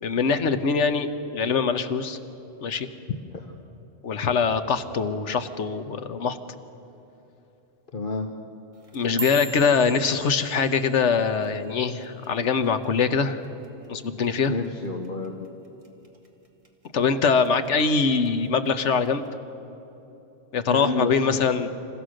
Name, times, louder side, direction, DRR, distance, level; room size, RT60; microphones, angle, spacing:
voice 1, 0.0-2.2 2.6-2.9 4.0-6.4 8.9-13.4 13.9-14.5 16.9-19.2 20.5-21.7, left 5 dB, 85° left, 9 dB, 1.3 m, -23 dB
voice 2, 7.9-8.3 14.5-15.5 20.7-21.4, left 3 dB, 50° left, 4 dB, 1.1 m, -30 dB
sound 1, 8.7-13.2 13.4-13.9 14.2-14.7 15.0-15.3 15.8-16.3 16.6-17.5 17.8-18.3 19.1-19.2, right 4 dB, 30° right, 1.8 m, -40 dB
27.5 x 15.0 x 6.4 m, 2.9 s
omnidirectional pair, 1.2 m